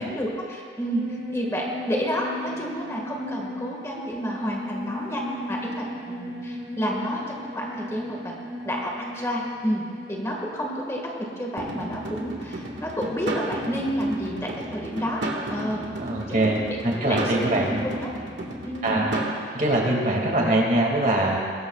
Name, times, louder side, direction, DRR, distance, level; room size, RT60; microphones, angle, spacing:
voice 1, 0.0-8.3 8.6-15.2 15.5-15.9 16.3-18.1 18.6-19.1, equal, 15° left, -1 dB, 1.8 m, -30 dB
sound 1, 0.9-12.8 13.1-13.2, left 1 dB, 20° right, 4.0 m, -37 dB
sound 2, 11.6-19.4, right 1 dB, 80° right, 1.8 m, -33 dB
voice 2, 16.0-17.9 18.8-19.2 19.5-21.4, right 1 dB, 45° right, -1 dB, 2.3 m, -23 dB
22.0 x 18.0 x 2.4 m, 2.1 s
head